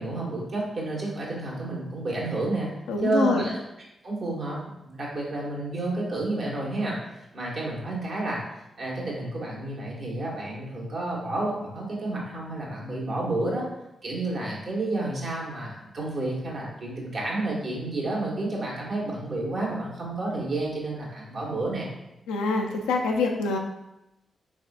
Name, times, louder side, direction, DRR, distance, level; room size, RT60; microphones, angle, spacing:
voice 1, 0.0-2.7 3.0-3.6 4.0-7.0 7.3-8.4 8.8-13.7 14.0-21.9, right 2 dB, 60° right, -4 dB, 1.1 m, -30 dB
voice 2, 2.9-3.5 22.3-23.6, left 3 dB, 90° left, 1 dB, 0.4 m, -25 dB
3.5 x 3.3 x 2.4 m, 0.92 s
supercardioid pair, 40°, 0 cm